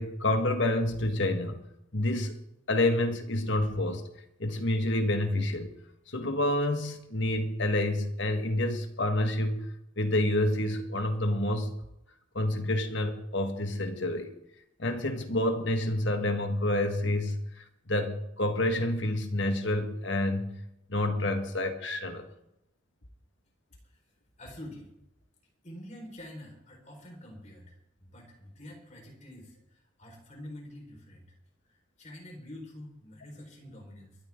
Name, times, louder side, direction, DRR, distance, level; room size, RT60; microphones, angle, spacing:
voice 1, 0.0-1.6 1.9-2.3 2.7-4.1 4.4-5.7 6.1-11.7 12.3-14.3 14.8-20.6 20.9-22.3, left 1 dB, 65° left, 1.8 m, -28 dB
voice 2, 24.4-24.9 25.6-29.6 30.0-31.2 32.0-34.2, left 1 dB, 35° left, 4.8 m, -46 dB
22.5 x 13.0 x 3.8 m
head